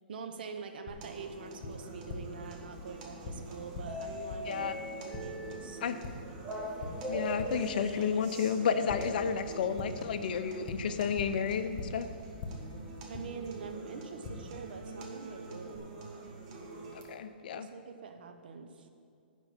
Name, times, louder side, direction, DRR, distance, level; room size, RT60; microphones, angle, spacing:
voice 1, 0.1-5.8 13.1-15.9 17.5-18.9, right 5 dB, 65° right, 6 dB, 0.9 m, -45 dB
Tap, 0.9-15.8, left 2 dB, 40° left, 1.2 m, -46 dB
sound 1, 1.0-17.0, right 3 dB, 45° right, 1.8 m, -48 dB
sound 2, 2.7-9.7, right 1 dB, 10° right, 1.3 m, -41 dB
voice 2, 7.1-12.1 16.9-17.7, left 7 dB, 60° left, 10 dB, 0.6 m, -32 dB
10.0 x 4.5 x 7.2 m, 2.4 s
hypercardioid pair, 135°, 5 cm